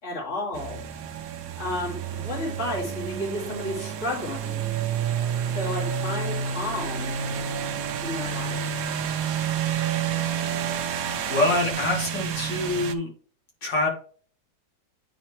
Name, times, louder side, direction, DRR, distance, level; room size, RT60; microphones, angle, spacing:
voice 1, 0.0-0.8 1.5-4.6 5.5-7.2 8.0-8.6, left 1 dB, 40° left, -3 dB, 2.7 m, -32 dB
sound 1, 0.5-12.9, right 7 dB, 65° right, 0.9 m, -29 dB
voice 2, 11.3-13.1 13.6-13.9, left 2 dB, 75° left, -1 dB, 2.8 m, -25 dB
9.5 x 4.3 x 3.1 m, 0.43 s
omnidirectional pair, 1.9 m